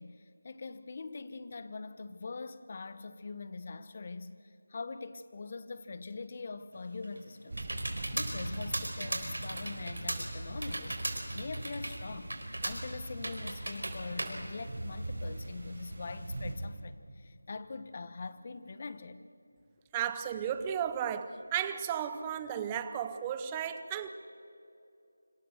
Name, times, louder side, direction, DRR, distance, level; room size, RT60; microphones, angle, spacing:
voice 1, 0.0-12.3 12.6-19.2, left 4 dB, 35° left, 13 dB, 1.1 m, -43 dB
Computer keyboard, 6.8-15.3, right 1 dB, 75° right, 4.2 m, -39 dB
sound 1, 7.5-16.5, right 2 dB, 55° right, 6.2 m, -41 dB
voice 2, 19.9-24.1, right 9 dB, 15° right, 10 dB, 0.8 m, -34 dB
26.5 x 26.0 x 6.5 m, 2.6 s
figure-of-eight pair, 170°, 0 cm